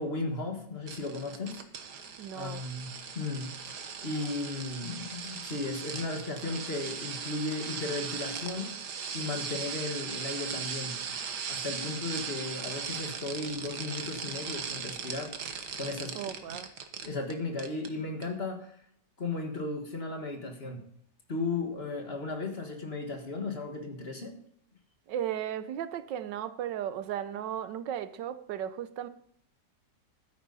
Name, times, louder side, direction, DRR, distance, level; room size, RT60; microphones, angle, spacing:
voice 1, 0.0-1.6 2.3-3.5 4.0-8.7 9.1-11.0 11.5-15.3 15.8-16.1 17.0-18.7 19.2-20.8 21.3-24.4, left 3 dB, 35° left, 1.9 m, -35 dB
sound 1, 0.9-17.3 17.6-17.9 18.2-18.3, right 6 dB, 70° right, 1.8 m, -38 dB
voice 2, 2.2-2.6 16.1-16.7 25.1-29.1, right 10 dB, 90° right, 1.4 m, -35 dB
12.5 x 9.9 x 4.1 m
omnidirectional pair, 1.9 m